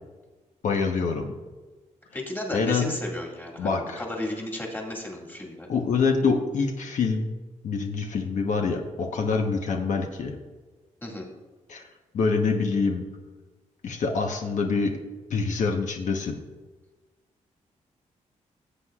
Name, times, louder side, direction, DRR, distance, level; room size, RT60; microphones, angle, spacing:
voice 1, 0.6-1.3 2.5-2.9 3.6-4.0 5.7-7.3 7.6-10.4 11.7-11.8 12.1-13.0 13.8-15.0 15.3-16.4, left 4 dB, 70° left, 2 dB, 1.0 m, -25 dB
voice 2, 2.1-5.7 11.0-11.3, left 1 dB, 15° left, -1 dB, 2.1 m, -34 dB
16.5 x 8.2 x 2.4 m, 1.3 s
wide cardioid pair, 115°, 13 cm